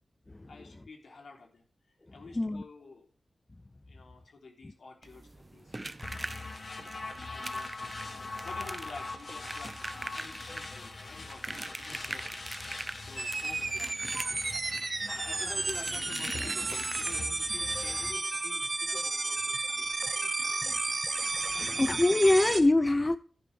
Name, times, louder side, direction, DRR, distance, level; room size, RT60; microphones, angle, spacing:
voice 1, 0.5-1.7 2.1-3.1 3.8-6.0 6.6-6.7 7.2-7.8 8.0-9.7 10.0-12.4 13.0-14.1 15.0-20.3 20.6-20.8 21.1-21.8, left 4 dB, 80° left, 3.2 m, -49 dB
sound 1, 5.0-17.5 19.0-19.1 19.4-19.5 19.9-20.0, right 2 dB, 25° right, 0.6 m, -42 dB
sound 2, 6.0-18.1, left 3 dB, 50° left, 1.5 m, -42 dB
sound 3, 13.2-22.6, right 3 dB, 45° right, 1.4 m, -32 dB
voice 2, 21.6-23.2, left 2 dB, 25° left, 0.5 m, -24 dB
11.5 x 9.6 x 3.3 m
wide cardioid pair, 90°, 0 cm